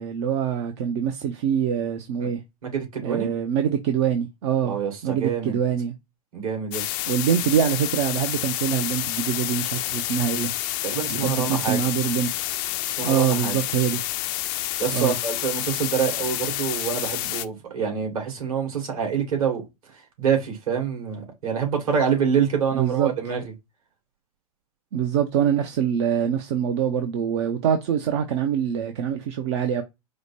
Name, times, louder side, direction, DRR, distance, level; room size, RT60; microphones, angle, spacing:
voice 1, 0.0-2.4 3.0-4.8 5.0-5.9 7.1-10.5 11.1-12.4 13.0-14.0 14.9-15.2 22.7-23.1 24.9-29.8, right 8 dB, 45° right, 0.6 m, -24 dB
voice 2, 2.6-3.3 4.6-5.6 6.3-7.0 10.8-11.8 13.0-13.6 14.8-19.6 20.2-23.4, right 7 dB, 60° right, 2.5 m, -26 dB
sound 1, 6.7-17.5, left 16 dB, 35° left, 0.4 m, -29 dB
4.9 x 2.1 x 4.2 m
figure-of-eight pair, 110°, 20 cm